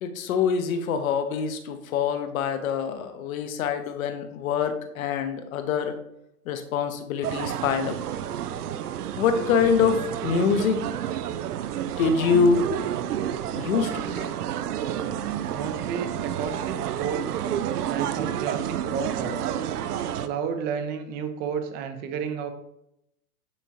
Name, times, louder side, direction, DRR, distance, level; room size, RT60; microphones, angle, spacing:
voice 1, 0.0-5.9 6.5-8.0 9.2-10.8 12.0-12.7 13.5-14.3, left 6 dB, 60° left, 8 dB, 1.1 m, -25 dB
sound 1, 7.2-20.3, right 10 dB, 80° right, 0.6 m, -30 dB
voice 2, 15.5-17.3 17.9-19.6 20.2-22.5, right 6 dB, 20° right, 8 dB, 0.6 m, -32 dB
9.8 x 3.5 x 2.9 m, 0.79 s
hypercardioid pair, 130°, 46 cm